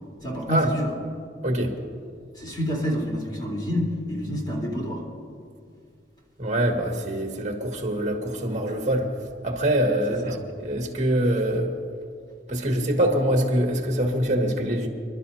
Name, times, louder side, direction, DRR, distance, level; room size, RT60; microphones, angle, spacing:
voice 1, 0.2-0.9 2.3-5.0 10.1-10.4, equal, 25° left, -3 dB, 3.7 m, -28 dB
voice 2, 1.4-1.7 6.4-9.1 9.4-11.7 12.5-14.9, right 1 dB, 40° right, 1 dB, 2.0 m, -24 dB
27.5 x 12.0 x 2.8 m, 2.3 s
head